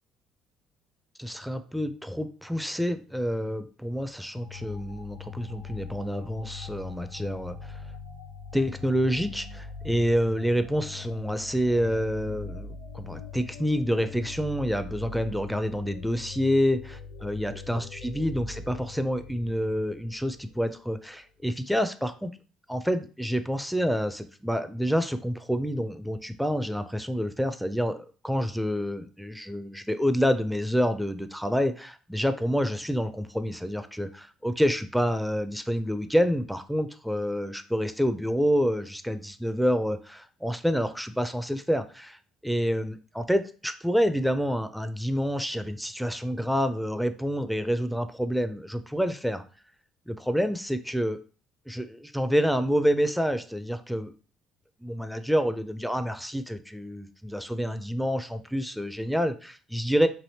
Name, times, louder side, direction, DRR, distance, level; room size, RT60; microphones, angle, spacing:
voice 1, 1.2-7.8 8.5-22.3 22.7-42.2 42.4-49.4 50.1-51.2 51.7-54.1 54.8-60.1, equal, ahead, 10 dB, 0.4 m, -28 dB
sound 1, 4.4-20.7, left 5 dB, 85° left, 0.6 m, -42 dB
3.3 x 2.6 x 2.7 m, 0.38 s
hypercardioid pair, 65°, 0 cm